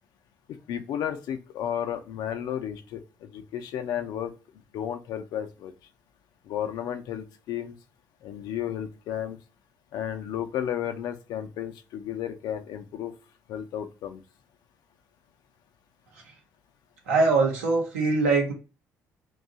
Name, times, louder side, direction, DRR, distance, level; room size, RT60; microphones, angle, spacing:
voice 1, 0.7-4.3 4.7-5.7 6.4-7.8 8.2-9.4 9.9-13.1 13.5-14.2, left 10 dB, 65° left, 7 dB, 0.5 m, -33 dB
voice 2, 17.1-18.5, right 3 dB, 85° right, 0 dB, 0.8 m, -23 dB
2.6 x 2.3 x 3.8 m, 0.33 s
hypercardioid pair, 50°, 8 cm